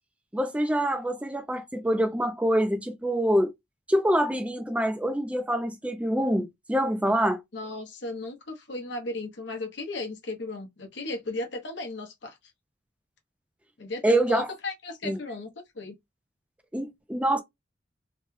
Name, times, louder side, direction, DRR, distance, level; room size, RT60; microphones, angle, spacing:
voice 1, 0.3-3.5 3.9-7.4 14.0-14.5 15.0-15.2 16.7-17.4, right 1 dB, 5° right, 0.4 m, -25 dB
voice 2, 7.5-12.4 13.8-15.5 15.7-15.9, left 2 dB, 70° left, 0.9 m, -35 dB
3.0 x 2.2 x 3.1 m
head